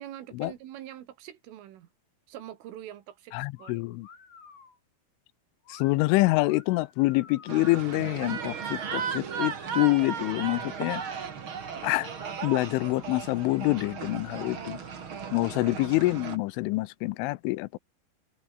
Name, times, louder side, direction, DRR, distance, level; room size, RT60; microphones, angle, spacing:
voice 1, 0.0-1.9 2.3-4.0, right 12 dB, 85° right, 4.5 m, -44 dB
voice 2, 3.3-4.1 5.7-11.0 11.8-12.1 12.4-14.8 15.3-17.8, left 21 dB, 85° left, 3.1 m, -26 dB
sound 1, 3.6-3.8 4.0-4.8 5.6-5.9 6.4-8.0 8.9-9.8 10.3-11.2 11.6-11.8 12.1-13.2 13.7-13.9 14.3-15.4, left 5 dB, 65° left, 8.8 m, -53 dB
sound 2, 7.5-16.4, right 6 dB, 45° right, 1.6 m, -36 dB
omnidirectional pair, 5.6 m